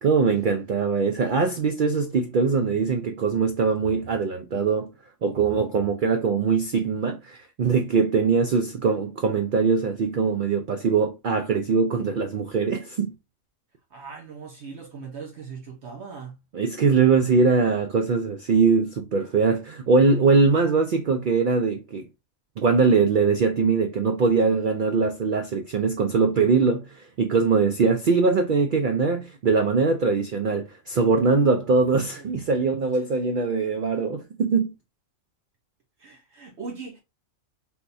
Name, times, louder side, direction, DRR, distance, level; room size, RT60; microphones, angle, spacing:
voice 1, 0.0-4.9 5.2-13.1 16.5-22.1 22.6-34.7, right 4 dB, 90° right, 0.4 m, -22 dB
voice 2, 13.9-16.4 32.1-32.3 33.2-33.3 36.0-37.0, right 5 dB, 60° right, 1.0 m, -39 dB
3.5 x 2.9 x 2.5 m
omnidirectional pair, 1.4 m